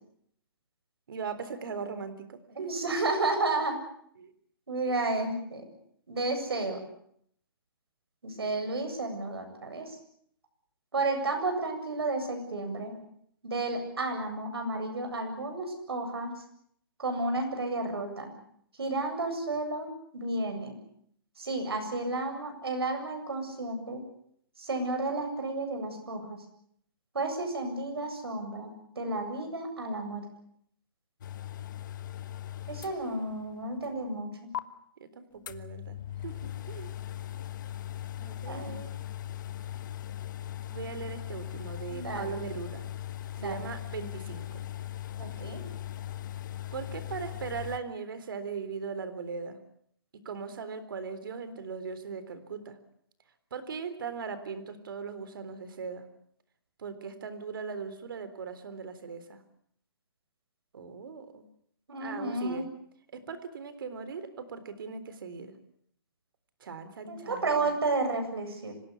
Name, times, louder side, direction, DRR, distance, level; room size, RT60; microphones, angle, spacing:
voice 1, 1.1-2.9 4.2-4.3 4.9-5.0 35.0-36.0 36.2-36.9 38.2-38.9 40.7-42.9 43.4-44.6 46.7-49.6 50.1-52.8 53.5-56.0 56.8-59.4 60.7-61.5 62.0-62.7 63.1-65.6 66.6-67.7, right 5 dB, 65° right, 12 dB, 3.7 m, -39 dB
voice 2, 2.5-3.7 4.7-5.6 6.1-6.8 8.2-9.9 10.9-13.0 13.4-16.3 17.0-18.3 18.8-20.7 21.4-24.0 24.6-26.4 27.1-30.2 32.7-34.5 38.5-38.7 41.9-42.4 43.4-43.6 45.2-45.6 61.9-62.6 67.1-68.7, right 2 dB, 90° right, 6 dB, 7.9 m, -32 dB
sound 1, 31.2-33.5 33.8-33.9 34.5-34.6 35.5-47.8, left 12 dB, 55° left, 1.4 m, -39 dB
26.0 x 17.5 x 8.4 m, 0.68 s
hypercardioid pair, 150°, 13 cm